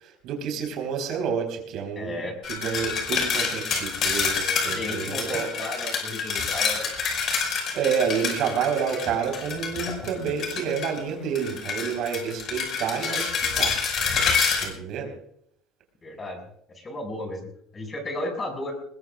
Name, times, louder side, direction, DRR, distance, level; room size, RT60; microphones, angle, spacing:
voice 1, 0.0-2.2 2.5-5.5 7.7-13.3 13.6-13.7 14.6-15.1, right 7 dB, 55° right, 4 dB, 4.1 m, -29 dB
voice 2, 2.0-2.4 4.6-6.9 16.0-16.4 16.7-18.7, left 1 dB, 20° left, 3 dB, 6.1 m, -34 dB
sound 1, 2.4-11.0 11.4-14.6, left 6 dB, 45° left, 5.4 m, -27 dB
21.5 x 21.0 x 2.4 m, 0.68 s
cardioid pair, 140°, 0 cm